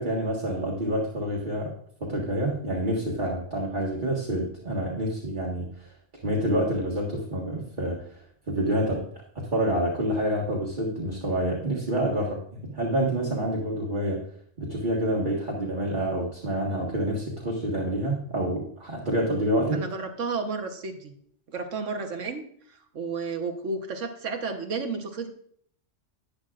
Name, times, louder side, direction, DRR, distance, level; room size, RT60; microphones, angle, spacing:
voice 1, 0.0-1.7 2.0-5.9 6.2-8.2 8.5-9.0 9.4-12.4 12.6-14.2 14.6-19.8, right 1 dB, 40° right, -4 dB, 1.9 m, -27 dB
voice 2, 19.7-21.1 21.5-22.4 22.9-25.3, right 4 dB, 80° right, 5 dB, 1.5 m, -32 dB
11.5 x 10.5 x 2.5 m, 0.62 s
omnidirectional pair, 1.3 m